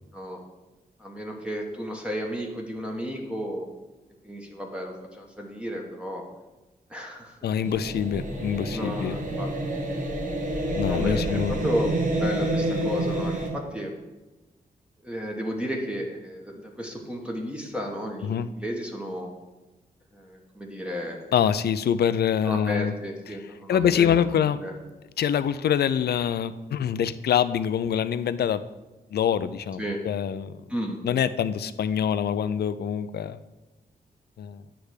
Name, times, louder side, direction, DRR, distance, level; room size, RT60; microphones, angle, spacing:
voice 1, 1.0-3.7 4.2-6.2 6.9-7.4 8.7-9.5 10.9-13.9 15.0-19.3 20.1-21.3 22.4-24.7 29.8-30.0 30.7-31.0, equal, 5° right, 0 dB, 1.2 m, -33 dB
voice 2, 7.4-9.2 10.8-11.5 18.2-18.5 21.3-22.9 23.7-24.6 25.2-28.6 29.1-30.6 31.0-33.4 34.4-34.6, left 8 dB, 75° left, 14 dB, 0.4 m, -25 dB
sound 1, 7.6-13.5, right 1 dB, 55° right, 1.5 m, -28 dB
9.9 x 3.4 x 6.5 m, 1.1 s
wide cardioid pair, 100°, 17 cm